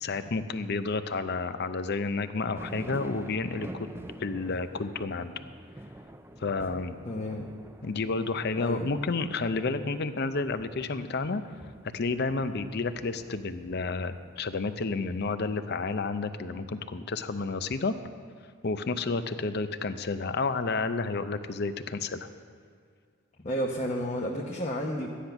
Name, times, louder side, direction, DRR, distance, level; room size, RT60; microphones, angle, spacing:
voice 1, 0.0-3.9 4.2-5.3 6.4-7.0 7.8-11.4 11.9-17.9 18.6-22.3, left 3 dB, 50° left, 11 dB, 0.6 m, -30 dB
sound 1, 2.6-15.3, right 1 dB, 10° right, 0.4 m, -47 dB
voice 2, 7.0-7.5 8.6-8.9 23.4-25.1, equal, 30° left, -2 dB, 0.9 m, -31 dB
13.5 x 10.0 x 5.8 m, 2.1 s
head